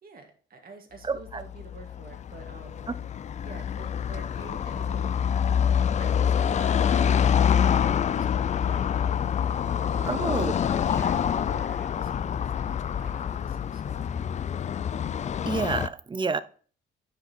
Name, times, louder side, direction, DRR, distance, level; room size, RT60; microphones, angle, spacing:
voice 1, 0.0-2.9 3.4-5.1 6.0-9.3 9.8-10.2 10.7-14.3, right 4 dB, 50° right, 1.8 m, -48 dB
voice 2, 1.0-1.4 10.1-10.5 10.9-11.1 15.5-16.4, right 4 dB, 25° right, 0.5 m, -29 dB
Car passing by / Traffic noise roadway noise, 1.2-15.9, left 8 dB, 35° left, 0.4 m, -26 dB
6.6 x 5.0 x 4.3 m
cardioid pair, 90°, 20 cm